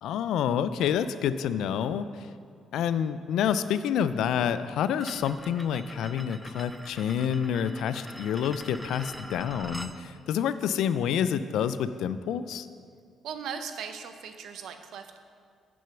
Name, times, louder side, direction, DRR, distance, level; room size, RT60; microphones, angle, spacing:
voice 1, 0.0-2.3 2.7-12.7, left 8 dB, 80° left, 13 dB, 0.3 m, -28 dB
sound 1, 5.0-10.0, right 1 dB, 5° right, 0.4 m, -44 dB
voice 2, 13.2-15.2, right 7 dB, 75° right, 7 dB, 0.6 m, -38 dB
6.9 x 6.2 x 5.7 m, 2.2 s
cardioid pair, 90°, 0 cm